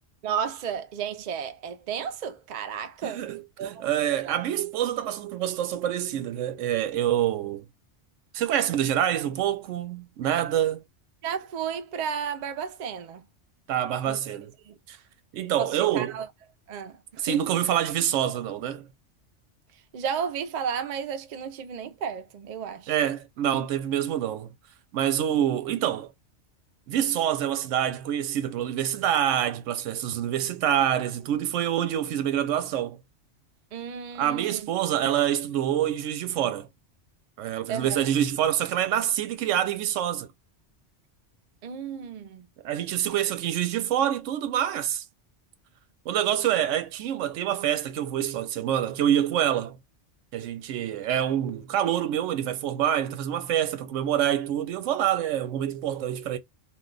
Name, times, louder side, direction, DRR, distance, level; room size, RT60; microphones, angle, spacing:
voice 1, 0.2-3.2 3.6-4.4 11.2-13.3 14.0-14.4 14.6-14.8 15.6-16.3 16.7-17.6 19.9-22.9 33.7-34.7 37.7-38.1 41.6-42.5, right 7 dB, 60° right, 0.4 m, -33 dB
voice 2, 3.0-7.6 8.3-10.8 13.7-14.5 14.9-15.0 15.3-16.1 17.2-18.9 22.9-24.5 24.9-26.1 26.9-33.0 34.2-36.7 37.4-40.3 42.6-45.0 46.1-49.8 50.3-56.4, right 10 dB, 85° right, 0.9 m, -26 dB
2.5 x 2.2 x 3.7 m
omnidirectional pair, 1.2 m